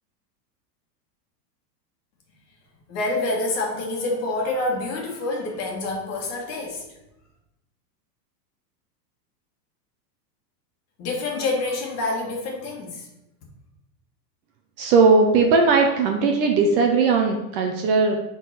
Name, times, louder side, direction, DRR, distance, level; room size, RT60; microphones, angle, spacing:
voice 1, 2.9-6.8 11.0-13.1, left 2 dB, 30° left, -1 dB, 1.8 m, -27 dB
voice 2, 14.8-18.1, right 4 dB, 35° right, 2 dB, 0.7 m, -18 dB
7.8 x 4.0 x 5.7 m, 0.92 s
supercardioid pair, 165°, 50 cm